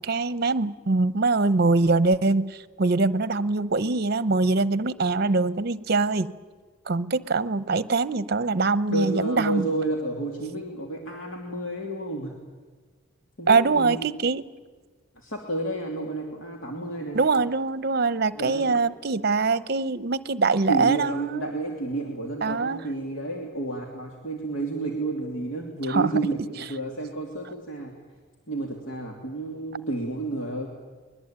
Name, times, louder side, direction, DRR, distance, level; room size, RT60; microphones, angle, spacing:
voice 1, 0.0-6.3 6.9-9.7 13.5-14.4 17.1-21.5 22.4-22.8 25.9-26.1, right 3 dB, 50° right, 15 dB, 0.8 m, -23 dB
voice 2, 8.9-12.3 13.4-14.2 15.1-17.3 18.3-18.8 20.7-27.9 28.5-30.7, right 2 dB, 80° left, 0 dB, 3.0 m, -31 dB
23.0 x 21.0 x 8.9 m, 1.4 s
head